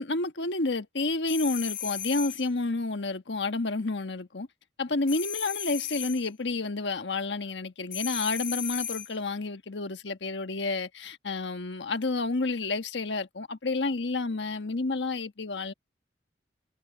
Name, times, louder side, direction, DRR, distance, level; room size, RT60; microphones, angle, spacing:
voice 1, 0.0-4.5 4.8-15.7, left 3 dB, 80° left, 1.3 m, -30 dB
sound 1, 1.3-2.5 5.1-6.3 7.9-9.2, left 10 dB, 55° left, 1.1 m, -35 dB
head